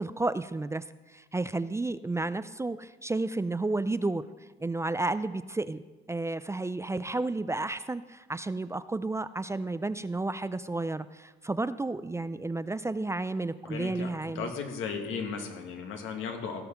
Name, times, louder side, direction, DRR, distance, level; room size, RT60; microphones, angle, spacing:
voice 1, 0.0-4.2 4.6-5.8 6.1-14.5, right 2 dB, 15° right, 14 dB, 0.4 m, -32 dB
voice 2, 13.6-14.1 14.4-16.6, left 5 dB, 85° left, 4 dB, 1.7 m, -35 dB
16.5 x 5.5 x 5.8 m, 1.2 s
cardioid pair, 90°, 20 cm